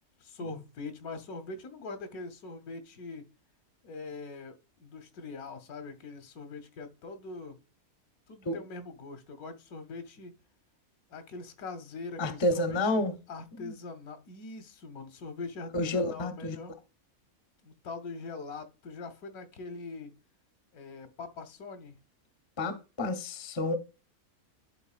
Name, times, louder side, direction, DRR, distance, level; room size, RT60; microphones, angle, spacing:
voice 1, 0.2-3.3 3.8-7.6 8.3-10.3 11.1-16.7 17.6-20.1 20.7-21.9, left 3 dB, 90° left, 1.4 m, -42 dB
voice 2, 12.2-13.1 13.5-13.7 15.7-16.6 22.6-23.7, left 1 dB, 30° left, 0.5 m, -30 dB
11.0 x 3.7 x 2.4 m
omnidirectional pair, 1.5 m